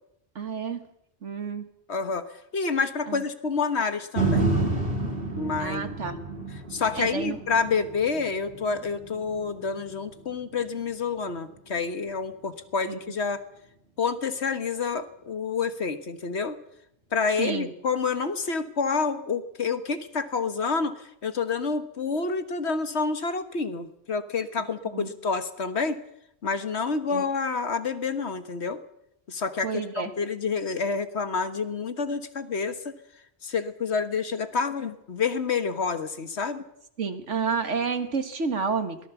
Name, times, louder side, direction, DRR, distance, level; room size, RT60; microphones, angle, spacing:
voice 1, 0.4-0.8 1.2-1.7 3.1-3.2 5.6-6.2 7.0-7.4 12.9-13.0 17.4-17.7 24.6-24.7 24.9-25.1 27.1-27.2 29.6-30.1 37.0-39.0, right 5 dB, 90° right, 8 dB, 2.1 m, -30 dB
voice 2, 1.9-2.3 2.5-4.5 5.3-5.9 6.7-13.5 14.0-16.6 17.1-26.0 26.4-28.8 29.3-32.9 33.4-36.6, left 5 dB, 70° left, 10 dB, 1.7 m, -28 dB
sound 1, 4.2-12.3 12.8-12.9, right 3 dB, 55° right, 3.6 m, -31 dB
23.0 x 18.0 x 7.2 m, 0.75 s
omnidirectional pair, 1.2 m